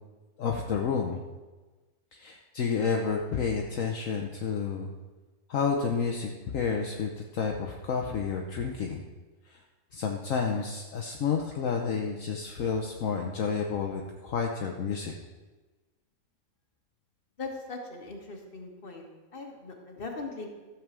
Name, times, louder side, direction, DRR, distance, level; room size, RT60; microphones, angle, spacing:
voice 1, 0.4-1.2 2.1-4.9 5.5-9.0 9.5-9.6 9.9-15.1, left 6 dB, 65° left, 1 dB, 1.2 m, -30 dB
voice 2, 17.4-19.1 19.3-20.5, left 3 dB, 40° left, 1 dB, 1.7 m, -40 dB
14.0 x 4.7 x 7.4 m, 1.2 s
omnidirectional pair, 1.5 m